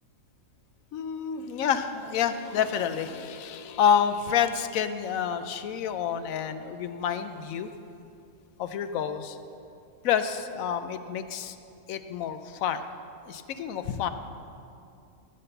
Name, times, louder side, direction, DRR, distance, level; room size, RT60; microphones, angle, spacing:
voice 1, 0.9-7.7 8.6-9.4 10.0-11.6 11.9-12.8 13.3-14.1, left 8 dB, 80° left, 10 dB, 1.0 m, -28 dB
13.5 x 5.9 x 6.7 m, 2.6 s
omnidirectional pair, 1.4 m